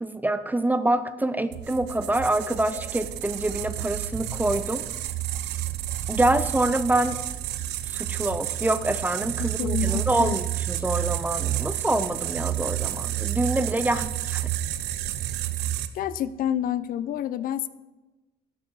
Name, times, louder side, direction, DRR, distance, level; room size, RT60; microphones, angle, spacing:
voice 1, 0.0-4.8 6.1-7.2 7.9-14.5, right 1 dB, 10° right, 12 dB, 0.4 m, -26 dB
sound 1, 1.5-15.9, right 13 dB, 90° right, 0.6 m, -30 dB
voice 2, 9.6-10.4 15.9-17.7, left 10 dB, 55° left, 15 dB, 0.4 m, -28 dB
12.5 x 6.1 x 3.9 m, 1.1 s
cardioid pair, 110°, 17 cm